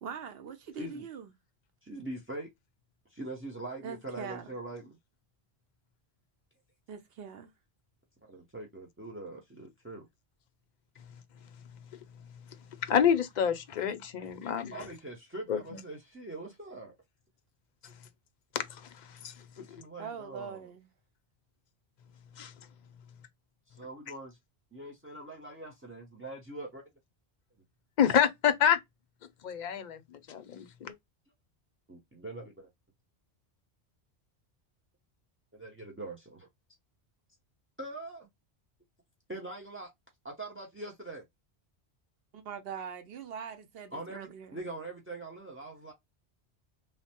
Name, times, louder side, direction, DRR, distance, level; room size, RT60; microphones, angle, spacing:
voice 1, 0.0-1.3 3.8-4.5 6.9-7.5 20.0-20.9 42.3-44.6, right 7 dB, 65° right, 0.8 m, -42 dB
voice 2, 1.8-2.5 3.1-5.0 8.2-10.1 14.7-16.9 19.6-20.7 23.7-24.4 24.7-26.8 31.9-32.7 35.5-36.5 37.8-38.3 39.3-39.9 40.2-41.2 43.9-45.9, right 2 dB, 20° right, 0.3 m, -43 dB
voice 3, 12.8-14.7 15.5-15.8 18.5-18.8 19.2-19.3 22.4-22.5 28.0-28.8 29.4-30.0 30.3-30.9, left 8 dB, 55° left, 0.5 m, -27 dB
3.2 x 2.0 x 2.7 m
omnidirectional pair, 1.1 m